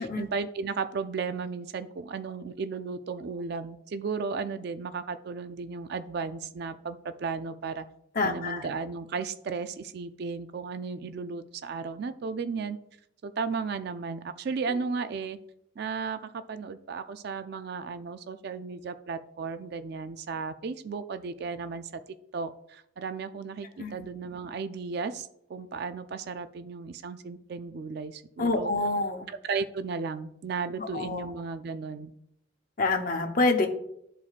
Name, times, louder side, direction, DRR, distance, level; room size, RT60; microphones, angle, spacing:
voice 1, 0.0-7.9 8.2-12.8 13.2-15.4 15.8-21.9 22.3-28.7 29.3-32.1, right 5 dB, 50° right, 11 dB, 0.3 m, -34 dB
voice 2, 8.2-8.7 23.8-23.9 28.4-29.3 30.8-31.3 32.8-33.7, left 3 dB, 40° left, 4 dB, 0.8 m, -27 dB
12.5 x 4.2 x 2.4 m, 0.75 s
head